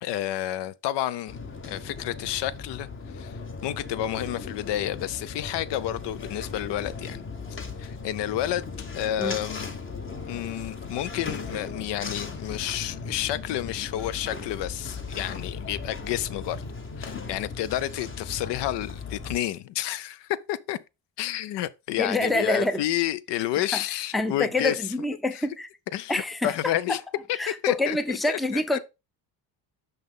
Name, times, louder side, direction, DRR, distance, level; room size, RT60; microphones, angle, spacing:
voice 1, 0.0-1.4 1.6-7.2 7.8-9.7 10.3-16.6 17.0-20.8 21.2-24.8 25.3-25.5 25.9-27.0 27.5-28.8, left 12 dB, 65° left, 0.5 m, -30 dB
sound 1, 1.3-19.4, left 4 dB, 25° left, 1.0 m, -37 dB
voice 2, 22.0-22.8 24.1-25.7 26.1-26.5 27.4-28.8, left 2 dB, ahead, 0.5 m, -26 dB
5.7 x 5.3 x 3.7 m
cardioid pair, 110°, 46 cm